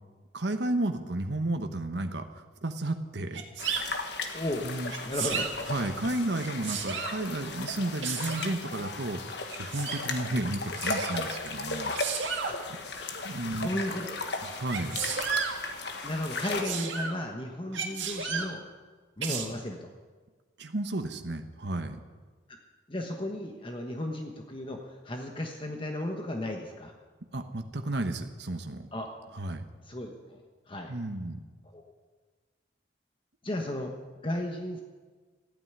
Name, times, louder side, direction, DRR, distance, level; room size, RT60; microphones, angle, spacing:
voice 1, 0.3-3.4 4.6-4.9 5.3-9.2 9.6-11.9 13.2-13.7 14.4-15.0 19.3-19.5 20.6-22.0 27.3-28.9 29.3-29.6 30.9-31.4, right 2 dB, 65° right, 7 dB, 1.2 m, -32 dB
Sneeze, 3.3-3.8 4.9-5.5 6.4-7.2 8.0-8.5 9.5-10.0 10.8-11.2 11.9-12.5 14.7-15.6 16.4-17.2 17.7-18.5 19.2-19.5, right 6 dB, 90° right, 2.0 m, -33 dB
sound 1, 3.6-16.6, left 3 dB, 65° left, 1.6 m, -36 dB
voice 2, 4.3-4.7 5.0-5.5 12.4-12.5 13.5-14.2 16.0-18.6 19.2-19.9 22.9-26.9 28.9-29.1 29.9-30.4 30.7-30.9 31.7-31.8 33.4-33.9 34.2-34.8, left 1 dB, 30° left, 3 dB, 1.2 m, -34 dB
14.5 x 9.4 x 9.5 m, 1.4 s
head